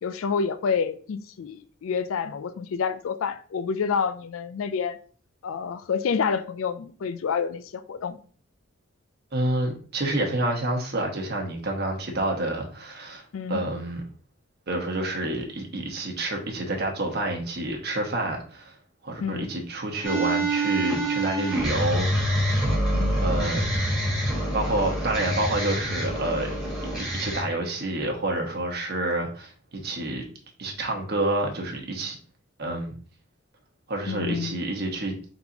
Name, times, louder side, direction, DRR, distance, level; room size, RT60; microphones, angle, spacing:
voice 1, 0.0-5.0 5.4-8.2 13.3-13.6 19.2-19.5 22.9-23.2 34.1-34.7, left 6 dB, 80° left, 11 dB, 0.4 m, -28 dB
voice 2, 9.3-14.0 14.7-18.7 19.0-22.4 23.2-23.6 24.5-26.5 27.0-30.2 30.6-32.2 32.6-32.9 33.9-35.2, right 1 dB, 50° right, 1 dB, 1.1 m, -28 dB
sound 1, 20.0-27.4, right 1 dB, ahead, 1.9 m, -26 dB
4.0 x 3.9 x 2.8 m, 0.43 s
head